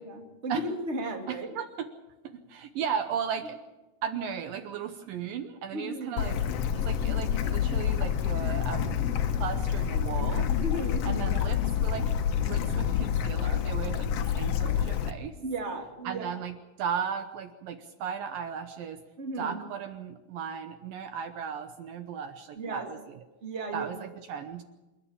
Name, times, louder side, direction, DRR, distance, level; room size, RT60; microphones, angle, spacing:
voice 1, 0.0-1.5 5.7-6.3 10.6-11.5 15.4-16.3 19.2-19.6 22.6-22.9 23.4-23.9, right 1 dB, 20° right, 3 dB, 2.2 m, -35 dB
voice 2, 1.3-1.9 2.5-3.6 4.0-9.0 9.3-10.5 11.1-15.3 16.0-19.0 19.4-23.2 23.7-24.6, right 7 dB, 75° right, 8 dB, 2.4 m, -36 dB
Bird / Stream, 6.2-15.1, left 8 dB, 85° left, 1.4 m, -28 dB
27.5 x 11.5 x 8.6 m, 1.1 s
omnidirectional pair, 4.4 m